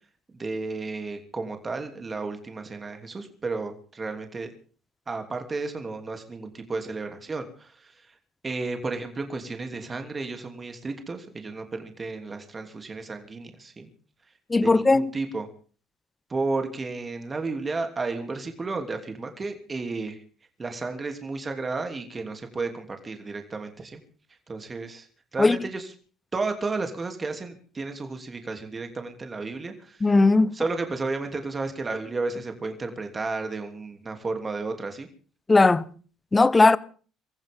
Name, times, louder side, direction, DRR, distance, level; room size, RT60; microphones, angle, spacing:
voice 1, 0.3-4.5 5.1-8.2 8.4-13.9 14.6-15.5 16.3-20.2 20.6-24.0 24.5-25.1 25.3-25.9 26.3-30.2 30.5-35.1, right 3 dB, 30° right, 3.0 m, -32 dB
voice 2, 14.5-15.1 25.4-25.6 30.0-30.5 35.5-35.8 36.3-36.8, left 3 dB, 20° left, 1.0 m, -18 dB
25.0 x 15.0 x 3.7 m
supercardioid pair, 75°, 0 cm